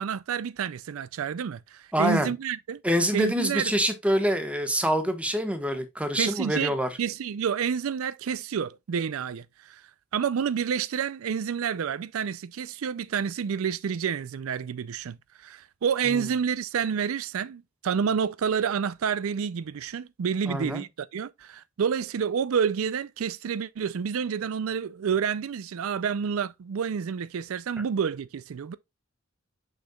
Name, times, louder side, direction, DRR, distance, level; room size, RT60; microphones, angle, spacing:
voice 1, 0.0-2.8 3.1-3.7 6.2-6.7 7.0-9.8 10.1-28.8, right 7 dB, 85° right, 0.4 m, -29 dB
voice 2, 1.9-2.3 2.8-6.9 16.1-16.3 20.5-20.8, equal, 5° right, 1.1 m, -26 dB
6.6 x 6.2 x 2.3 m
head